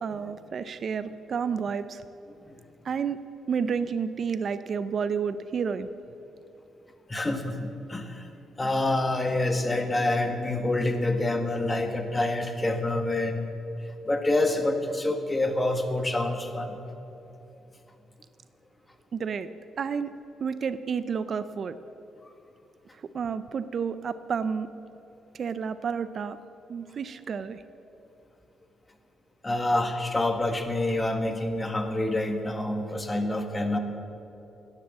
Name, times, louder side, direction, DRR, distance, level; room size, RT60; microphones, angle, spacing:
voice 1, 0.0-2.0 2.8-3.2 3.5-5.9 19.1-19.5 19.8-20.1 20.4-21.8 23.1-24.7 25.3-26.4 26.7-27.6, right 6 dB, 50° right, 13 dB, 0.6 m, -30 dB
voice 2, 7.1-8.3 8.6-13.5 13.8-16.8 22.2-22.3 29.4-33.8, left 2 dB, 20° left, 6 dB, 1.7 m, -27 dB
17.0 x 10.5 x 7.3 m, 2.9 s
cardioid pair, 90°, 0 cm